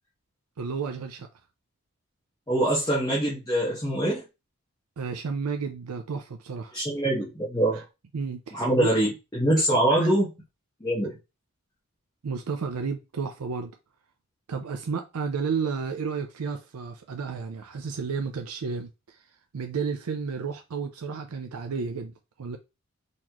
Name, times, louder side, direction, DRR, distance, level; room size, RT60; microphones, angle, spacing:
voice 1, 0.6-1.3 5.0-6.8 7.7-7.8 8.1-8.9 10.0-10.1 12.2-13.7 14.5-19.2 19.5-22.6, right 5 dB, 85° right, 0.5 m, -32 dB
voice 2, 2.5-4.2 6.7-7.8 8.5-10.3 10.8-11.2, right 1 dB, 15° left, 1.0 m, -24 dB
4.1 x 3.1 x 2.9 m
head